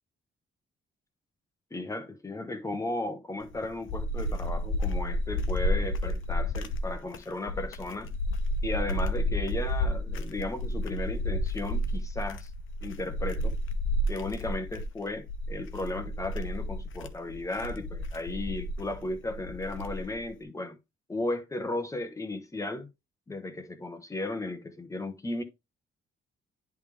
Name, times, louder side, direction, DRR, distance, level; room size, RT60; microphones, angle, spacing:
voice 1, 1.7-8.1 8.6-12.5 12.8-13.6 14.1-20.8 21.1-22.9 23.3-25.4, left 2 dB, 15° left, 1.1 m, -35 dB
sound 1, 3.4-20.3, left 1 dB, 70° left, 0.9 m, -31 dB
10.5 x 3.5 x 3.3 m
cardioid pair, 135°, 21 cm